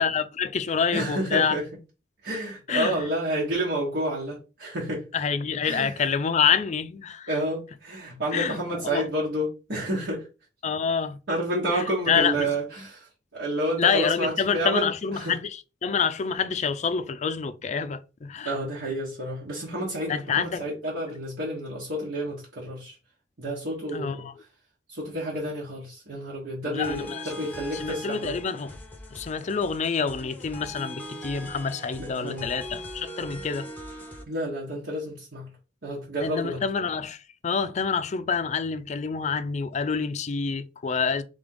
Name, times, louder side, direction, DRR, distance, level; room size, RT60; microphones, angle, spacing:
voice 1, 0.0-1.6 2.7-3.0 5.1-7.3 8.3-8.6 8.8-9.1 10.6-11.2 11.7-12.5 13.8-15.5 15.8-18.5 20.1-20.7 23.9-24.3 26.6-27.2 27.8-28.7 29.1-33.7 36.2-37.2 37.4-41.2, left 6 dB, 40° left, 0.4 m, -27 dB
voice 2, 0.9-1.6 2.2-5.0 5.6-6.1 7.3-10.3 11.3-13.1 13.3-15.4 18.4-22.9 23.4-24.3 24.9-28.3 32.0-32.5 34.3-35.5 35.8-36.6, right 1 dB, 75° right, 1.3 m, -30 dB
sound 1, 26.8-34.2, equal, 10° left, 0.7 m, -41 dB
3.4 x 3.4 x 3.8 m
head